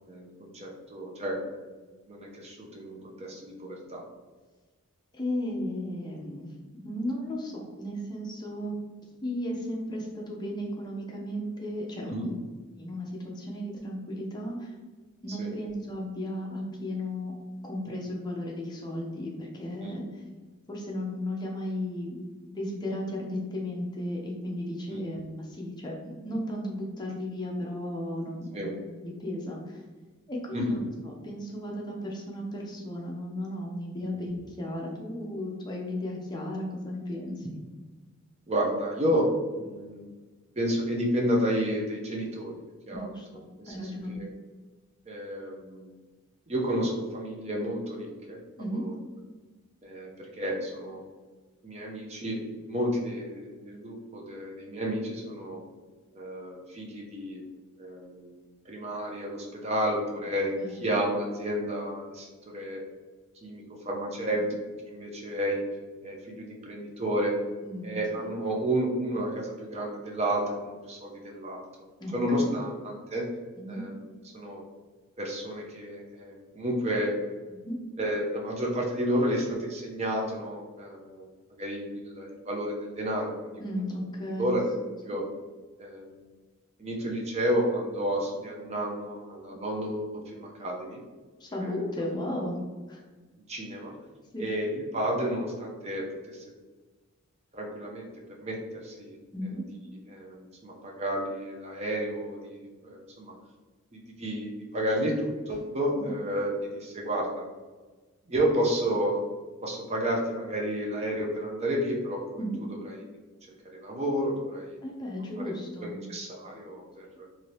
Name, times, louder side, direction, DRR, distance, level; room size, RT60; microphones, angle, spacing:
voice 1, 0.1-1.4 2.1-4.0 12.1-12.3 15.4-15.5 19.8-20.0 24.9-25.1 28.5-28.7 30.5-30.8 34.0-34.2 38.5-40.1 40.6-42.5 42.9-43.1 43.6-44.3 45.1-45.9 46.5-48.4 48.7-48.9 49.8-51.0 51.6-52.4 52.7-55.6 56.1-57.4 57.8-58.4 58.7-62.8 63.4-64.4 64.9-65.6 66.0-67.3 67.8-71.6 72.1-73.3 73.7-74.0 74.3-74.6 75.2-77.1 78.0-81.3 81.6-83.8 84.4-84.7 85.0-85.3 85.8-86.3 86.8-91.0 91.5-91.7 93.5-93.9 94.4-96.4 97.5-98.1 98.4-98.6 98.8-99.2 100.1-103.3 103.9-107.5 108.3-109.1 109.6-112.4 112.9-113.0 113.7-114.8 115.4-115.5 115.8-117.3, equal, 30° right, -1 dB, 0.5 m, -31 dB
voice 2, 5.1-6.5 6.8-8.7 9.2-12.4 12.8-14.7 15.2-17.3 17.6-20.2 20.7-22.2 22.5-29.8 30.3-37.5 43.0-44.2 48.6-48.9 60.6-60.9 64.4-64.5 67.6-68.4 72.0-72.6 73.6-73.8 77.5-78.0 83.6-84.6 91.4-92.6 92.9-93.0 94.3-94.4 99.3-99.7 106.0-106.1 112.4-112.6 114.8-116.0, left 1 dB, 20° left, -1 dB, 0.5 m, -35 dB
2.7 x 2.6 x 3.1 m, 1.3 s
head